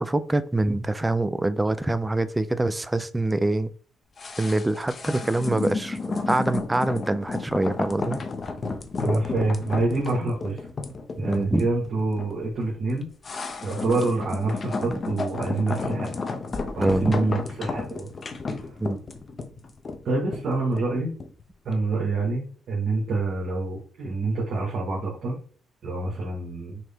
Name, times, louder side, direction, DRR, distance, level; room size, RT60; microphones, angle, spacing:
voice 1, 0.0-3.7 4.4-6.0 6.3-8.2 11.2-11.7 14.8-14.9 16.8-17.1 18.8-19.0, right 2 dB, 15° right, 0.4 m, -25 dB
sound 1, 4.2-21.4 21.7-21.8, left 3 dB, 40° left, 0.6 m, -32 dB
voice 2, 9.0-10.6 11.2-13.1 13.6-16.1 16.7-18.1 18.7-18.8 20.0-21.1 21.6-25.4 25.8-26.8, right 3 dB, 60° right, 1.4 m, -27 dB
6.1 x 2.2 x 3.5 m
cardioid pair, 90°, 0 cm